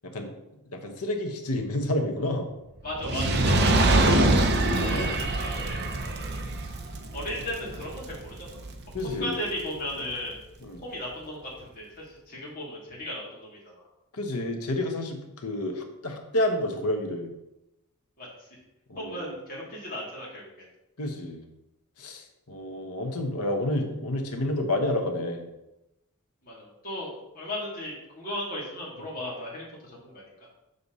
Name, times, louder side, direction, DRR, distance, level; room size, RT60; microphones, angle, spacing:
voice 1, 0.7-2.5 4.7-5.2 8.9-9.4 10.6-10.8 14.1-17.3 18.9-19.3 21.0-21.4 22.0-25.4, left 1 dB, 85° left, 4 dB, 1.2 m, -30 dB
voice 2, 2.8-4.2 4.7-5.9 7.1-8.6 9.0-10.3 10.8-13.9 18.2-18.5 18.9-20.7 26.4-30.2, left 1 dB, 40° left, -6 dB, 3.1 m, -36 dB
Fire, 2.9-9.3 10.0-10.1, right 2 dB, 50° right, 0.9 m, -25 dB
6.8 x 6.7 x 4.1 m, 0.93 s
head